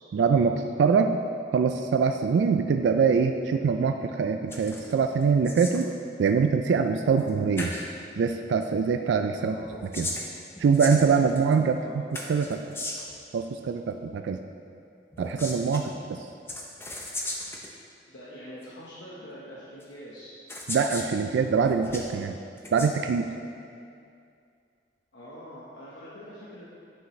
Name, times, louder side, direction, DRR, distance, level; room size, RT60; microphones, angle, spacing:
voice 1, 0.1-1.2 1.5-5.9 6.2-7.7 8.2-9.6 9.9-10.1 10.6-12.6 13.3-14.4 15.2-16.3 20.7-22.4 22.7-23.3, right 5 dB, 90° right, 6 dB, 0.3 m, -24 dB
sound 1, 4.5-4.9 5.2-5.9 7.2-7.3 7.6-7.8 9.6-11.5 12.1-13.2 15.1-15.8 16.5-17.7 18.6-18.7 19.8-19.9 20.5-21.1 21.6-22.1 22.6-22.9, left 2 dB, 15° left, 0.6 m, -36 dB
voice 2, 18.1-20.3 25.1-26.6, equal, 90° left, -8 dB, 1.0 m, -44 dB
10.0 x 5.7 x 3.1 m, 2.4 s
head